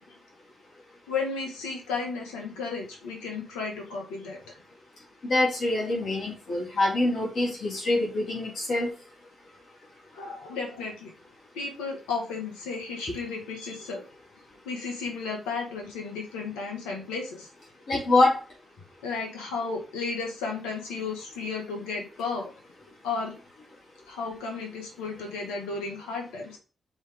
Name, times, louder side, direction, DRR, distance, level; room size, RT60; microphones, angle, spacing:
voice 1, 1.1-4.6 10.1-11.1 11.5-14.0 14.6-17.5 19.0-22.5 23.0-23.4 24.1-26.6, left 4 dB, 90° left, 1 dB, 2.1 m, -33 dB
voice 2, 5.2-8.9 17.9-18.3, left 2 dB, 65° left, -4 dB, 3.3 m, -25 dB
6.1 x 5.2 x 4.0 m, 0.35 s
hypercardioid pair, 45°, 0 cm